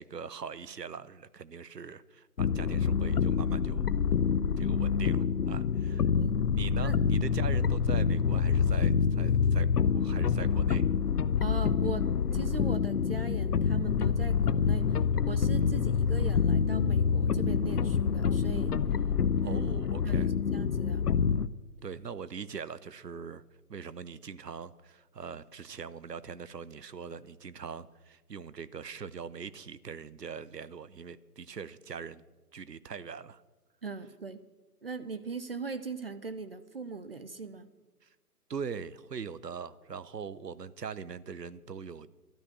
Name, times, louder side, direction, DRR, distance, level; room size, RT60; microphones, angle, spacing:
voice 1, 0.0-3.9 4.6-6.1 6.5-9.7 9.9-10.8 19.4-20.3 21.8-23.4 23.7-32.2 32.5-33.4 38.0-38.1 38.5-42.1, right 6 dB, 80° right, 17 dB, 0.9 m, -41 dB
sound 1, 2.4-21.5, left 6 dB, 70° left, 0.7 m, -27 dB
voice 2, 5.9-6.4 6.8-7.0 11.4-18.7 19.4-19.6 20.0-21.1 33.8-34.4 34.8-37.7, right 4 dB, 40° right, 12 dB, 0.6 m, -40 dB
12.5 x 12.5 x 6.2 m, 1.2 s
figure-of-eight pair, 150°, 48 cm